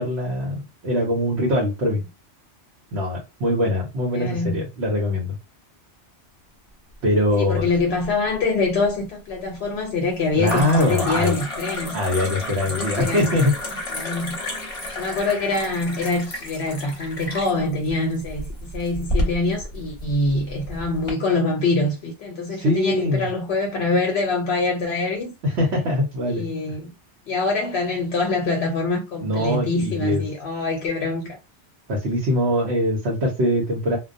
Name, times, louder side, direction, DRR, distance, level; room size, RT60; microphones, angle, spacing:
voice 1, 0.0-2.0 2.9-5.3 7.0-7.7 10.4-11.4 11.9-13.5 22.6-23.3 25.4-26.5 29.2-30.2 31.9-34.0, left 1 dB, 75° right, 1.0 m, -22 dB
voice 2, 4.1-4.6 7.4-12.0 12.6-13.3 13.9-14.4 14.6-25.3 26.3-26.9 27.3-31.4, left 3 dB, 70° left, 0.8 m, -24 dB
sound 1, 7.3-8.0 8.3-9.0 10.4-21.1, left 1 dB, 30° left, 0.9 m, -31 dB
2.2 x 2.2 x 2.5 m
omnidirectional pair, 1.2 m